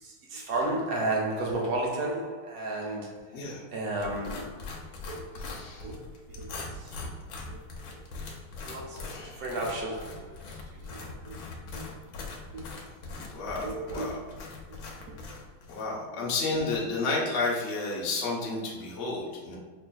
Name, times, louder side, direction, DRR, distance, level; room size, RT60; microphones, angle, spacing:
voice 1, 0.0-3.2 3.7-4.5 5.1-5.2 5.8-6.0 6.3-6.6 6.8-6.9 7.5-7.6 8.6-10.3 10.9-11.4 11.7-11.8 12.5-12.6 13.6-14.1, right 2 dB, 70° right, -3 dB, 0.8 m, -32 dB
voice 2, 3.3-3.6 5.3-5.9 9.1-9.5 13.2-14.1 15.7-19.6, left 3 dB, 60° left, -3 dB, 0.7 m, -31 dB
sound 1, 4.0-15.9, left 3 dB, 80° left, 1.4 m, -42 dB
5.8 x 2.5 x 2.3 m, 1.4 s
omnidirectional pair, 2.3 m